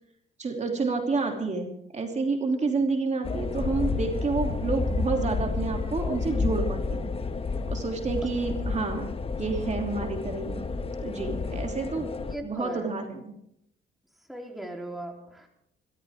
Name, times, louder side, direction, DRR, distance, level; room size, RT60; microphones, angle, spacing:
voice 1, 0.4-7.1 7.7-9.1 9.4-10.6 11.0-12.1 12.4-13.3, right 3 dB, 35° right, 2 dB, 2.8 m, -29 dB
sound 1, 3.2-12.4, left 4 dB, 30° left, 1.1 m, -30 dB
voice 2, 12.3-12.9 14.3-15.5, right 1 dB, ahead, 1 dB, 3.5 m, -38 dB
26.0 x 13.0 x 3.6 m, 0.73 s
cardioid pair, 90°, 20 cm